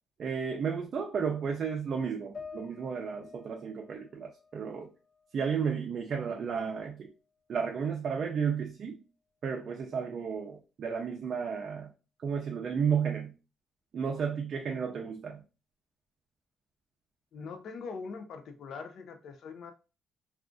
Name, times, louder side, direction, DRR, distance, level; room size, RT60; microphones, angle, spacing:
voice 1, 0.2-4.9 5.3-7.1 7.5-9.0 9.4-11.9 12.2-13.3 13.9-15.4, right 6 dB, 45° right, 0.5 m, -33 dB
sound 1, 2.3-5.8 6.1-7.2, left 5 dB, 40° left, 1.0 m, -50 dB
voice 2, 17.3-19.7, left 5 dB, 60° left, 0.4 m, -42 dB
2.4 x 2.4 x 3.7 m
cardioid pair, 130°, 0 cm